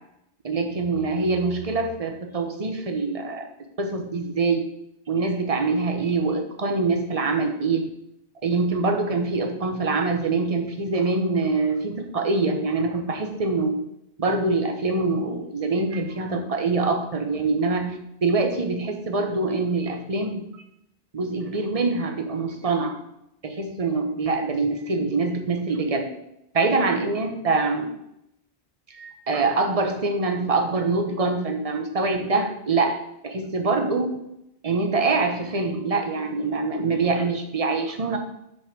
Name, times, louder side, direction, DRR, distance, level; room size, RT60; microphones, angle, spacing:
voice 1, 0.4-3.5 3.8-4.7 5.1-7.9 8.4-13.8 14.2-20.5 21.1-23.0 23.4-26.1 26.5-27.9 28.9-33.0 33.2-34.2 34.6-38.2, right 3 dB, 35° right, 4 dB, 1.0 m, -24 dB
7.0 x 5.4 x 6.1 m, 0.81 s
omnidirectional pair, 1.1 m